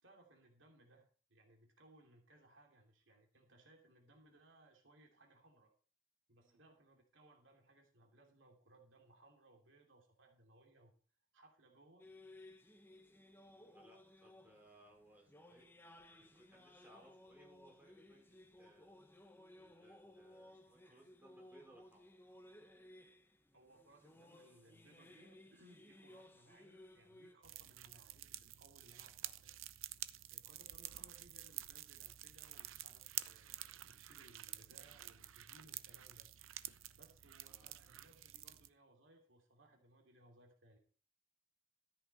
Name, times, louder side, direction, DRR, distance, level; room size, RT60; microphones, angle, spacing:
voice 1, 0.0-5.7 6.3-10.9 11.3-12.1 23.5-29.5 30.3-36.3 37.0-40.8, right 1 dB, 75° right, 2 dB, 2.8 m, -66 dB
sound 1, 12.0-27.3, left 1 dB, 10° left, 1.0 m, -60 dB
voice 2, 13.5-15.7 16.1-18.9 19.5-22.2 37.4-37.8, right 1 dB, 10° right, -2 dB, 5.1 m, -65 dB
sound 2, 27.4-38.7, right 14 dB, 90° right, 0.7 m, -49 dB
13.5 x 8.4 x 4.1 m, 0.40 s
head